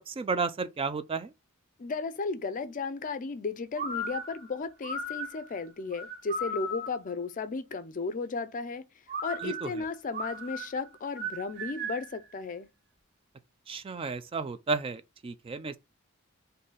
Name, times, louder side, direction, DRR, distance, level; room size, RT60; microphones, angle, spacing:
voice 1, 0.1-1.3 9.4-9.7 13.7-15.8, right 4 dB, 25° right, 0.3 m, -32 dB
voice 2, 1.8-8.8 9.2-12.7, left 4 dB, 40° left, 0.4 m, -34 dB
sound 1, 3.8-7.1 9.1-12.2, equal, 50° right, 1.8 m, -37 dB
3.9 x 2.7 x 3.9 m
head